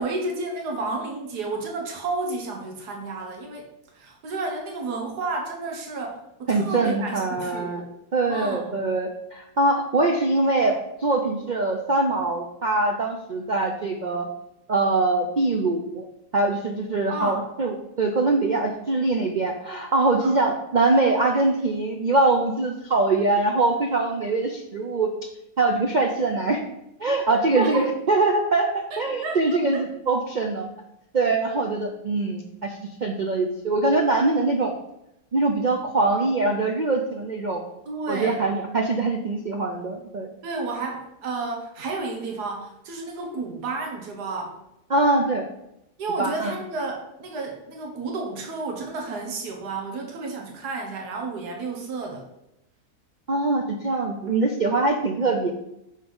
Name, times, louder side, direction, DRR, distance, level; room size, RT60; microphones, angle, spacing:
voice 1, 0.0-3.7 3.9-7.9 8.3-8.9 17.1-17.4 20.1-20.4 27.5-27.8 28.9-29.6 37.9-38.4 40.4-44.6 46.0-52.2, right 3 dB, 85° right, 1 dB, 1.7 m, -31 dB
voice 2, 6.5-7.8 8.1-14.3 14.7-16.0 16.3-25.1 25.6-26.6 27.0-30.7 31.1-34.7 35.3-37.6 38.1-40.3 44.9-45.4 46.2-46.5 53.3-55.5, right 3 dB, 65° right, 2 dB, 0.4 m, -23 dB
6.1 x 4.5 x 5.4 m, 0.85 s
omnidirectional pair, 1.7 m